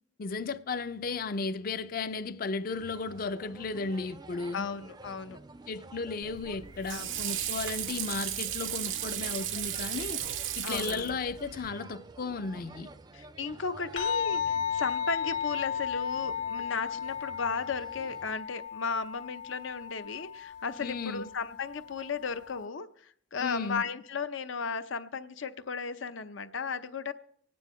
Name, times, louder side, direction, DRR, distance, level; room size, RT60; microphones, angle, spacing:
voice 1, 0.2-4.7 5.7-10.2 10.6-12.9 20.8-21.3 23.4-23.8, left 4 dB, 50° left, 0.5 m, -35 dB
sound 1, 2.7-18.4, right 2 dB, 20° right, 0.4 m, -51 dB
voice 2, 4.5-5.4 6.9-7.1 10.6-11.2 13.1-27.1, left 5 dB, 85° left, 0.7 m, -35 dB
Water / Sink (filling or washing), 6.2-11.7, right 10 dB, 90° right, 0.7 m, -35 dB
sound 2, 14.0-22.6, left 8 dB, 65° left, 1.6 m, -35 dB
25.5 x 9.5 x 3.1 m
head